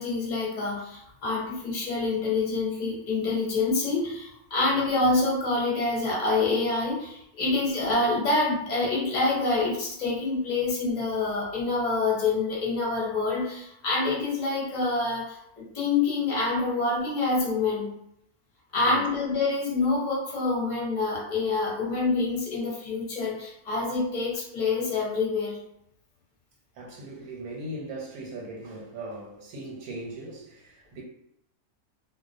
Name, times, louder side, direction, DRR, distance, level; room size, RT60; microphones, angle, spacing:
voice 1, 0.0-17.9 18.7-25.6, left 3 dB, 40° left, -4 dB, 0.7 m, -26 dB
voice 2, 18.8-19.1 26.7-31.0, right 2 dB, 85° right, -2 dB, 1.1 m, -39 dB
2.3 x 2.2 x 2.4 m, 0.77 s
omnidirectional pair, 1.5 m